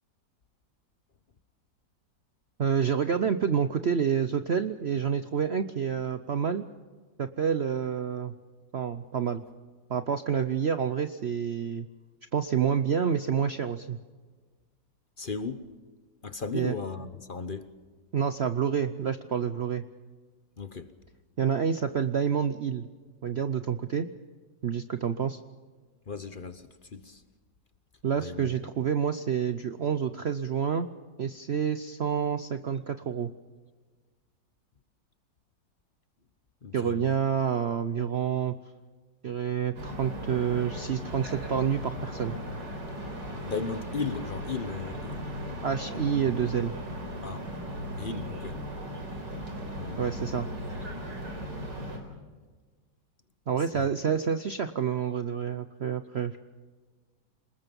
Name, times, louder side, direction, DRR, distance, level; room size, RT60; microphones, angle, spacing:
voice 1, 2.6-6.6 7.2-8.3 8.7-9.4 9.9-11.9 12.3-14.0 16.5-16.7 18.1-19.8 21.4-22.9 23.2-24.1 24.6-25.4 28.0-30.9 31.2-33.3 36.7-38.5 39.2-42.4 45.6-46.8 50.0-50.5 53.5-56.4, right 7 dB, 55° right, 0.7 m, -28 dB
voice 2, 15.2-15.7 16.2-17.7 20.6-20.9 26.1-26.6 26.9-27.2 28.2-28.5 36.6-37.2 43.4-45.3 45.9-46.3 47.2-47.5 48.0-48.6 49.8-50.4 50.9-51.0 53.7-53.9, left 4 dB, 35° left, 0.9 m, -36 dB
sound 1, 39.7-52.0, equal, 75° right, 4.4 m, -37 dB
28.0 x 20.0 x 5.4 m
omnidirectional pair, 1.9 m